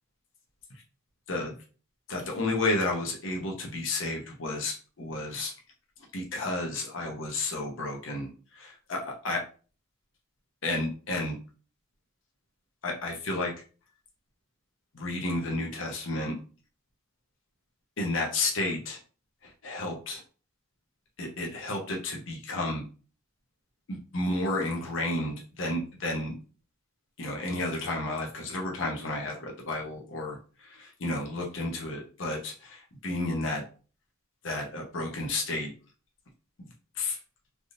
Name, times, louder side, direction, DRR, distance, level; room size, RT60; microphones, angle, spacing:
voice 1, 2.1-5.5 6.1-8.3 8.6-9.4 10.6-11.4 12.8-13.5 14.9-16.3 18.0-19.0 19.6-20.2 21.2-22.8 23.9-26.3 27.2-33.6 34.4-35.7 37.0-37.2, left 2 dB, 65° left, 0 dB, 0.7 m, -31 dB
3.4 x 2.6 x 2.6 m, 0.37 s
head